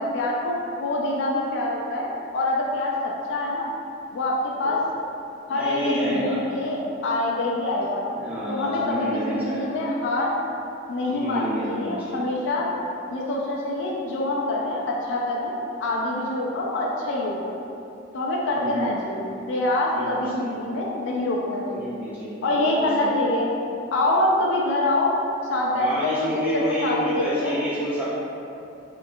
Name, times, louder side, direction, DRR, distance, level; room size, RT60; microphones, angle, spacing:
voice 1, 0.0-3.7 4.1-4.8 5.5-8.0 8.5-10.4 10.9-12.7 13.1-15.5 15.8-17.6 18.1-22.0 22.4-23.5 23.9-25.1 25.4-27.6, left 2 dB, 60° left, -3 dB, 0.3 m, -25 dB
voice 2, 5.5-6.4 8.1-9.6 11.1-12.3 18.6-18.9 19.9-20.6 21.7-23.1 25.8-28.0, equal, 5° right, -12 dB, 0.8 m, -29 dB
3.4 x 2.8 x 2.3 m, 2.7 s
head